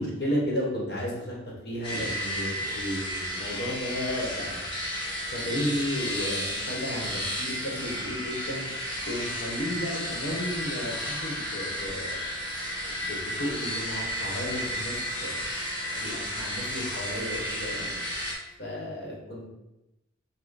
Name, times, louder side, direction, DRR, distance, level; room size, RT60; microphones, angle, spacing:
voice 1, 0.0-1.4 1.6-4.7 5.3-8.7 9.0-12.2 12.8-15.4 15.8-18.0 18.6-19.5, equal, 60° left, -4 dB, 1.2 m, -33 dB
sound 1, 1.8-18.3, equal, 30° left, 1.2 m, -33 dB
5.6 x 2.2 x 4.0 m, 0.96 s
head